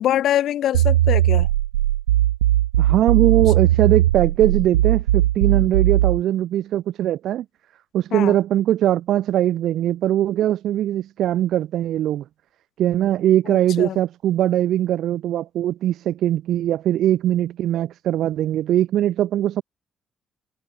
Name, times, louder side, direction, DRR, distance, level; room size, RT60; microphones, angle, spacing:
voice 1, 0.0-1.5 8.1-8.4 13.5-14.0, left 12 dB, 65° left, 5.8 m, -24 dB
sound 1, 0.7-6.2, right 13 dB, 85° right, 1.1 m, -18 dB
voice 2, 2.8-7.4 7.9-12.2 12.8-19.6, right 12 dB, 65° right, 0.9 m, -21 dB
hypercardioid pair, 45°, 0 cm